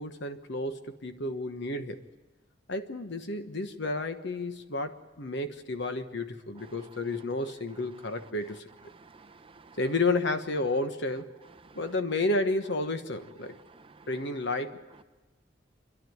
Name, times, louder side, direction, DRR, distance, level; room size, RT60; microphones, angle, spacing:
voice 1, 0.0-2.0 2.7-8.7 9.8-11.3 11.7-13.6 14.1-14.8, left 2 dB, 65° left, 8 dB, 1.3 m, -31 dB
voice 2, 8.9-9.8 11.6-11.8 13.7-14.1, right 4 dB, 30° right, 8 dB, 0.7 m, -54 dB
27.0 x 11.5 x 9.5 m, 1.2 s
head